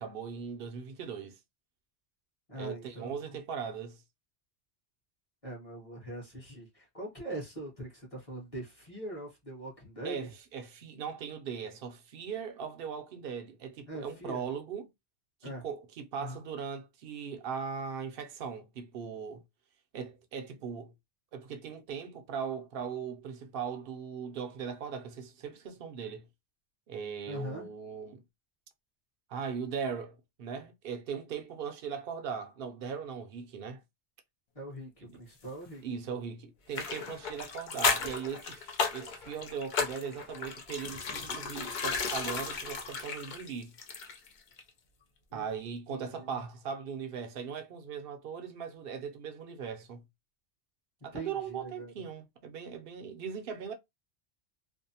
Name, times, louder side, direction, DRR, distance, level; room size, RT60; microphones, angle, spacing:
voice 1, 0.0-1.4 2.6-4.0 10.0-14.9 15.4-19.4 19.9-20.9 21.3-26.3 26.9-28.2 29.3-33.8 35.0-35.1 35.8-43.7 45.3-50.0 51.0-53.7, right 6 dB, 65° right, 0.7 m, -39 dB
voice 2, 2.5-3.4 5.4-10.3 13.9-14.4 15.4-15.6 16.2-16.4 27.3-27.7 34.5-35.8 45.3-45.5 45.9-46.4 51.1-52.0, right 1 dB, 35° left, 1.0 m, -42 dB
sound 1, 36.7-44.3 44.6-44.7, left 5 dB, 55° left, 0.6 m, -34 dB
2.6 x 2.0 x 2.7 m
omnidirectional pair, 1.1 m